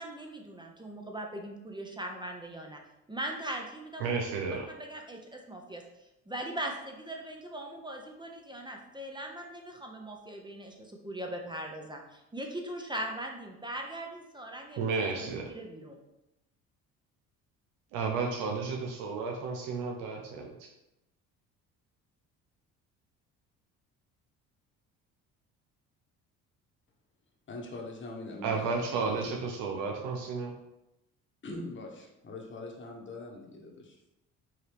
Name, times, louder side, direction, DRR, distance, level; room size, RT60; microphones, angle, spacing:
voice 1, 0.0-2.8 3.1-4.0 4.7-5.8 6.3-16.0, right 1 dB, 15° right, 2 dB, 0.7 m, -40 dB
voice 2, 4.0-4.7 14.8-15.5 17.9-20.7 28.4-30.5, right 4 dB, 85° right, 1 dB, 0.7 m, -32 dB
voice 3, 27.5-29.3 31.4-34.1, left 2 dB, 35° left, 0 dB, 1.2 m, -43 dB
4.7 x 3.0 x 3.4 m, 0.91 s
supercardioid pair, 70°, 35 cm